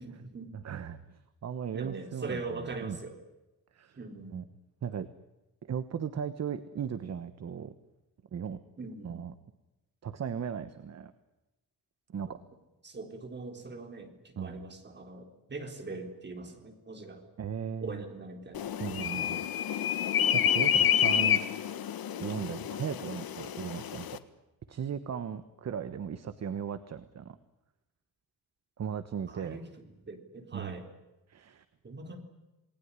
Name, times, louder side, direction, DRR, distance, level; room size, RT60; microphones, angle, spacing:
voice 1, 0.0-0.5 1.7-3.2 4.0-4.4 8.8-9.3 12.8-17.2 17.8-19.1 22.4-22.7 29.3-29.7 30.1-30.9 31.8-32.2, right 3 dB, 30° right, 5 dB, 3.8 m, -42 dB
voice 2, 0.5-3.0 3.7-4.0 4.3-4.4 4.8-5.1 5.7-7.7 8.3-8.6 9.0-9.3 10.0-11.1 12.1-12.4 14.4-14.5 17.4-18.0 18.8-19.4 20.3-21.4 22.2-24.1 24.7-27.4 28.8-29.6 30.5-30.8 31.3-31.6, right 7 dB, 45° right, 12 dB, 1.2 m, -37 dB
sound 1, 18.5-24.2, left 9 dB, 90° left, 1.6 m, -29 dB
28.5 x 19.5 x 9.9 m, 1.0 s
wide cardioid pair, 175°, 35 cm